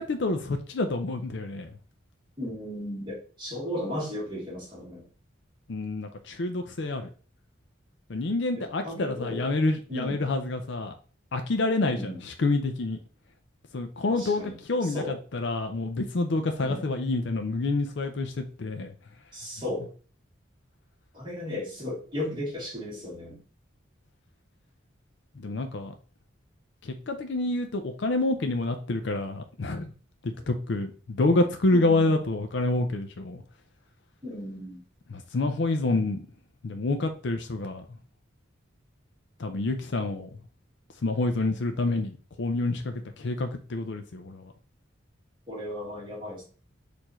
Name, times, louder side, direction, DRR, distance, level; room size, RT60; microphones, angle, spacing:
voice 1, 0.0-1.7 5.7-7.1 8.1-10.9 11.3-13.0 13.7-18.9 25.4-25.9 26.8-29.9 30.2-33.4 35.1-36.2 36.6-37.8 39.4-40.3 41.0-44.5, left 2 dB, 65° left, 6 dB, 0.5 m, -28 dB
voice 2, 2.4-5.1 8.5-9.5 9.9-10.2 11.8-12.2 14.1-14.5 14.8-15.1 16.6-16.8 19.3-19.9 21.1-23.4 31.7-32.1 34.2-34.8 45.5-46.4, left 1 dB, 25° right, -5 dB, 2.0 m, -35 dB
4.6 x 2.7 x 4.3 m, 0.39 s
head